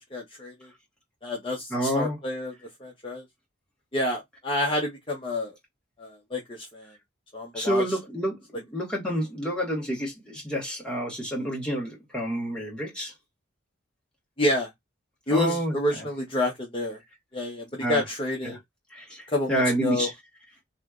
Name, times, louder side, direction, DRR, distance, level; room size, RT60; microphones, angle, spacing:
voice 1, 0.1-0.7 1.2-2.5 2.8-3.2 3.9-5.5 6.0-6.9 7.3-7.8 14.4-14.7 15.3-17.0 17.3-18.6 19.3-20.1, left 1 dB, 25° left, 0.8 m, -29 dB
voice 2, 1.7-2.2 7.5-8.4 8.7-13.1 15.3-15.7 17.8-18.0 18.4-18.6 18.9-20.1, equal, 5° left, 1.5 m, -28 dB
3.2 x 3.0 x 2.4 m
head